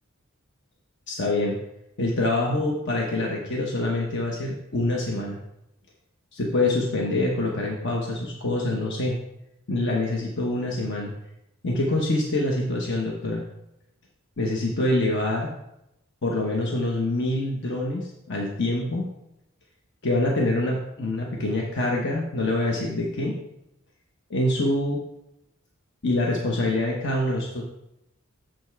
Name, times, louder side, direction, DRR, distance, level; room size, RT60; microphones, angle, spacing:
voice 1, 1.1-1.6 2.0-5.4 6.3-9.2 9.7-11.1 11.6-13.4 14.4-15.6 16.2-19.1 20.0-23.4 24.3-25.0 26.0-27.6, left 2 dB, 60° left, -1 dB, 1.0 m, -25 dB
7.4 x 5.4 x 4.6 m, 0.85 s
head